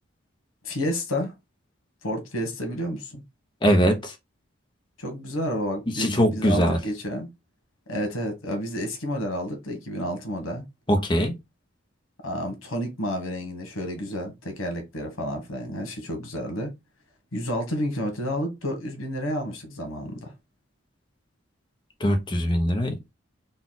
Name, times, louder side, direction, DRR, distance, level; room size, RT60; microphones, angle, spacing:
voice 1, 0.6-1.3 2.0-3.2 5.0-7.3 7.9-10.6 12.2-16.7 17.3-20.3, equal, 90° left, 1.4 m, -30 dB
voice 2, 3.6-4.1 5.9-6.8 10.9-11.3 22.0-23.0, equal, 25° left, 0.8 m, -21 dB
4.0 x 2.4 x 4.0 m
head